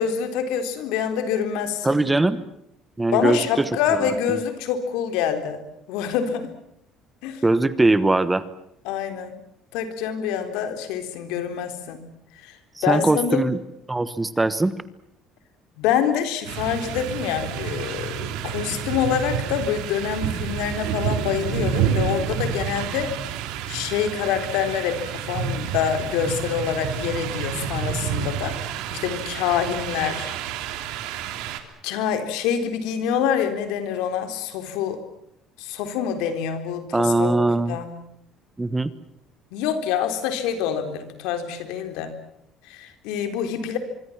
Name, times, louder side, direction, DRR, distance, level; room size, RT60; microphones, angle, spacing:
voice 1, 0.0-2.0 3.1-5.6 5.9-6.5 7.2-7.4 8.9-9.4 9.7-12.1 12.4-12.6 12.8-13.5 15.8-23.1 23.7-30.3 31.8-35.0 35.6-38.0 39.5-42.2 42.7-43.8, left 8 dB, 90° left, 8 dB, 3.9 m, -26 dB
voice 2, 1.8-2.4 3.0-3.7 4.0-4.4 7.4-8.4 12.8-13.6 13.9-14.7 36.9-37.8 38.6-38.9, right 2 dB, 10° right, 15 dB, 1.2 m, -21 dB
sound 1, 16.5-31.6, right 8 dB, 85° right, 3.1 m, -29 dB
25.0 x 24.5 x 7.4 m, 0.74 s
cardioid pair, 150°, 0 cm